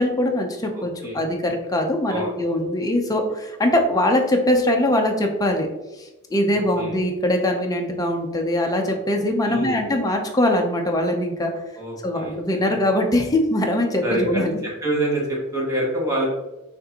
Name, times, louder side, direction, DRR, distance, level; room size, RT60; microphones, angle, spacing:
voice 1, 0.0-5.7 6.0-11.5 12.0-14.6, left 1 dB, 15° left, 2 dB, 0.6 m, -22 dB
voice 2, 0.7-1.2 2.1-2.3 6.5-7.0 9.4-9.9 11.7-12.3 14.0-16.3, right 1 dB, 15° right, -4 dB, 1.2 m, -26 dB
6.3 x 2.6 x 2.8 m, 1.0 s
head